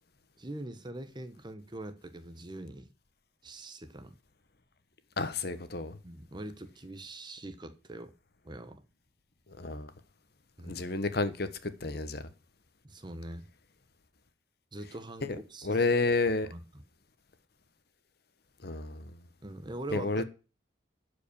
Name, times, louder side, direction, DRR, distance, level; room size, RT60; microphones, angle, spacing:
voice 1, 0.4-2.9 3.4-4.1 6.0-8.1 8.4-8.8 10.6-10.9 12.8-13.5 14.7-15.9 16.5-16.6 19.4-20.2, right 1 dB, 20° right, 0.9 m, -43 dB
voice 2, 5.2-6.0 9.6-9.9 10.7-12.2 15.2-15.4 15.6-16.5 18.6-19.1 19.9-20.2, left 3 dB, 50° left, 1.1 m, -30 dB
12.0 x 5.2 x 6.7 m
head